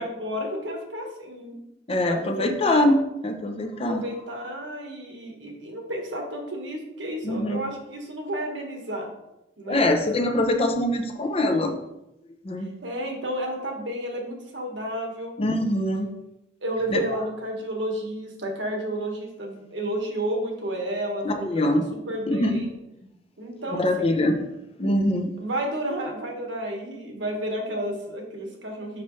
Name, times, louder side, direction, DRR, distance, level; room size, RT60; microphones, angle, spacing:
voice 1, 0.0-1.6 2.0-2.9 3.8-9.1 9.6-9.8 12.8-15.3 16.6-22.7 23.4-24.1 25.4-29.0, right 1 dB, 85° right, 1 dB, 1.4 m, -31 dB
voice 2, 1.9-4.0 7.2-7.6 9.7-11.7 12.4-12.7 15.4-16.1 16.9-17.0 21.2-21.8 22.3-22.6 23.7-24.5 24.8-25.3, left 1 dB, 30° left, 4 dB, 0.6 m, -23 dB
6.0 x 5.5 x 3.1 m, 0.88 s
head